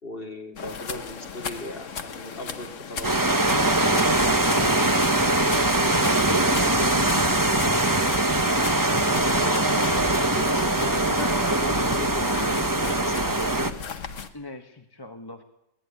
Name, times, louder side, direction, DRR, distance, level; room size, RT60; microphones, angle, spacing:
voice 1, 0.0-3.5 9.1-13.6, left 1 dB, 30° left, 2 dB, 3.3 m, -38 dB
sound 1, 0.6-14.3, left 6 dB, 50° left, 1.6 m, -38 dB
sound 2, 3.0-13.7, right 2 dB, 15° right, 1.1 m, -22 dB
voice 2, 4.5-4.8 5.8-8.4 14.3-15.4, left 2 dB, 15° left, 6 dB, 1.1 m, -40 dB
23.0 x 17.5 x 9.6 m, 0.89 s
omnidirectional pair, 1.8 m